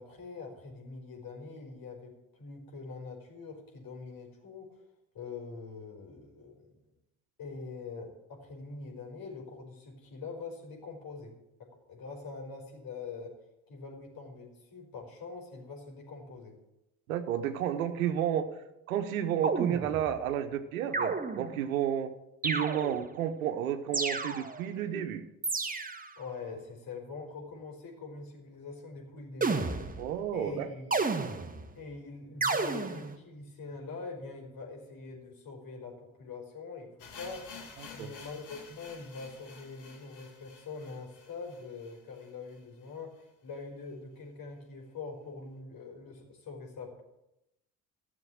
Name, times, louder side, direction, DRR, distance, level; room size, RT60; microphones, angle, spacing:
voice 1, 0.0-4.8 5.1-6.7 7.4-13.4 13.7-16.6 26.2-29.9 30.3-31.0 31.7-37.6 37.9-47.0, left 4 dB, 60° left, 1 dB, 5.3 m, -44 dB
voice 2, 17.1-18.5 18.9-22.1 22.4-25.2 30.0-30.7 37.8-38.1, right 10 dB, 90° right, 9 dB, 1.1 m, -31 dB
sound 1, 19.4-20.2 20.9-21.7 22.4-23.2 23.9-24.7 25.4-26.2 29.4-30.2 30.9-31.7 32.4-33.2, right 4 dB, 20° right, 1.6 m, -32 dB
sound 2, 37.0-42.9 43.2-43.3 43.5-43.6 44.2-44.3, left 5 dB, 75° left, 2.9 m, -51 dB
14.0 x 7.1 x 8.7 m, 0.89 s
hypercardioid pair, 60°, 41 cm